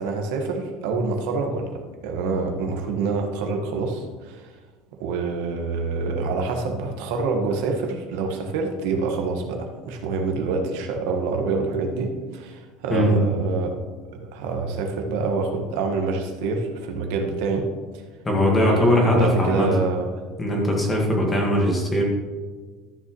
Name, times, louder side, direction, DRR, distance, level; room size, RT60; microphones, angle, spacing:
voice 1, 0.0-4.5 5.0-13.7 14.1-17.7 18.6-20.1, right 4 dB, 75° right, 3 dB, 1.3 m, -26 dB
voice 2, 18.2-19.7 20.4-22.0, left 1 dB, 15° left, 0 dB, 1.6 m, -20 dB
13.0 x 7.0 x 3.1 m, 1.4 s
cardioid pair, 165°, 0 cm